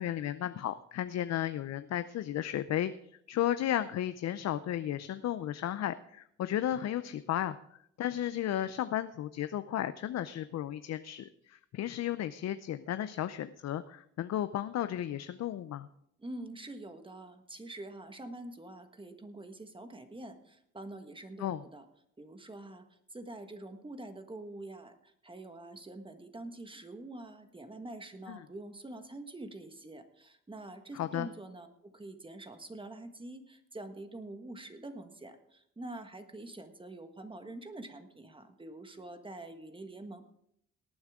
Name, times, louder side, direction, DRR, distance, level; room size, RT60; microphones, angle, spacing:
voice 1, 0.0-2.9 3.3-7.6 8.0-15.9 21.4-21.6 28.3-28.5 30.9-31.3, left 11 dB, 60° left, 12 dB, 0.6 m, -34 dB
voice 2, 16.2-21.8 22.2-22.8 23.1-40.2, right 2 dB, 15° right, 7 dB, 1.5 m, -46 dB
18.5 x 9.6 x 3.6 m, 0.72 s
cardioid pair, 90°, 30 cm